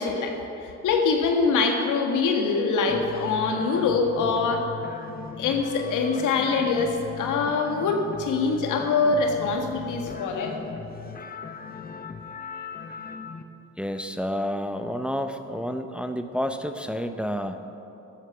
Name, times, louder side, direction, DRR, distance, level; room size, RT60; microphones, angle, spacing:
voice 1, 0.0-4.6 5.4-10.6, left 4 dB, 85° left, 3 dB, 1.6 m, -24 dB
sound 1, 2.9-13.4, left 6 dB, 30° left, 0.9 m, -39 dB
voice 2, 13.8-17.6, equal, 5° right, 7 dB, 0.6 m, -30 dB
13.0 x 8.5 x 7.0 m, 3.0 s
cardioid pair, 90°, 30 cm